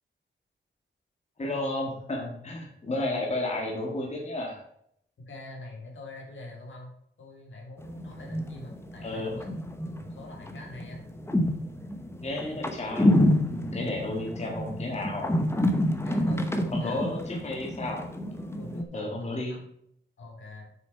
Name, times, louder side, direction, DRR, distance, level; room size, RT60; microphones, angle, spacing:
voice 1, 1.4-4.6 9.0-9.3 12.2-13.2 13.5-15.4 16.7-18.1 18.9-19.6, left 2 dB, 35° left, -1 dB, 1.8 m, -32 dB
voice 2, 5.3-6.9 7.2-9.5 9.8-11.0 16.0-17.0 18.5-19.6 20.2-20.7, left 2 dB, 75° left, 0 dB, 2.9 m, -45 dB
sound 1, 7.8-18.8, left 1 dB, 15° left, 0.9 m, -28 dB
7.9 x 6.1 x 4.5 m, 0.71 s
wide cardioid pair, 150°, 20 cm